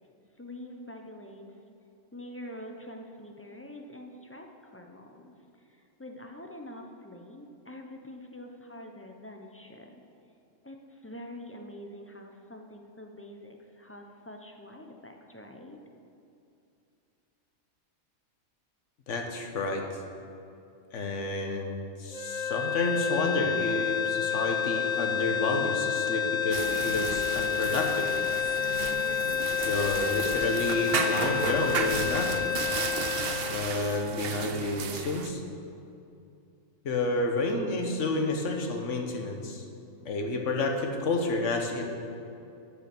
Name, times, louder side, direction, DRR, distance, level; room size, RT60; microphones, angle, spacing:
voice 1, 0.4-1.4 2.1-5.3 5.7-10.0 10.6-15.8, left 1 dB, 15° left, 2 dB, 0.7 m, -45 dB
voice 2, 19.1-19.8 20.9-28.1 29.7-32.4 33.5-35.4 36.8-39.6 40.0-42.0, left 2 dB, 65° left, 3 dB, 1.5 m, -30 dB
sound 1, 22.1-34.3, left 8 dB, 85° left, 2.3 m, -29 dB
sound 2, 26.5-35.3, right 6 dB, 55° right, 0.8 m, -34 dB
12.0 x 6.7 x 6.1 m, 2.6 s
omnidirectional pair, 1.4 m